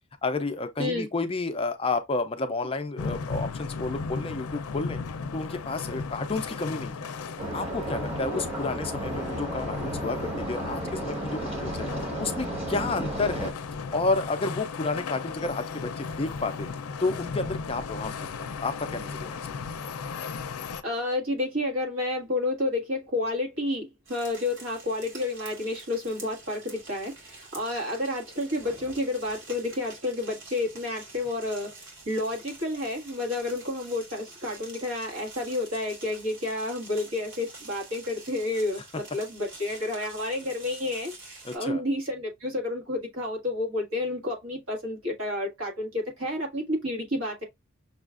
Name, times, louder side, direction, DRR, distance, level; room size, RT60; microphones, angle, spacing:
voice 1, 0.2-5.0 5.3-7.1 7.5-11.9 12.2-13.5 13.9-16.7 17.0-18.1 18.6-19.4 41.4-41.8, left 3 dB, 25° left, 0.4 m, -30 dB
sound 1, 3.0-20.8, left 5 dB, 90° left, 0.5 m, -36 dB
sound 2, 7.4-13.5, right 1 dB, 25° right, 1.2 m, -33 dB
voice 2, 20.8-47.4, left 2 dB, 70° right, 1.7 m, -30 dB
sound 3, 24.1-41.6, right 3 dB, 55° right, 1.8 m, -47 dB
6.1 x 2.4 x 2.4 m
head